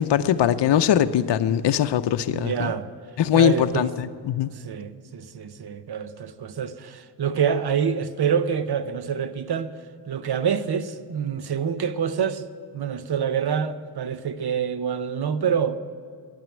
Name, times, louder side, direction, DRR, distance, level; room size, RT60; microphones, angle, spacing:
voice 1, 0.0-2.7 3.2-4.5, left 10 dB, 70° left, 0.7 m, -21 dB
voice 2, 2.3-2.9 3.3-3.9 4.5-9.7 10.1-12.5 12.7-15.8, right 7 dB, 60° right, 0.9 m, -26 dB
12.0 x 9.2 x 9.1 m
cardioid pair, 95°, 43 cm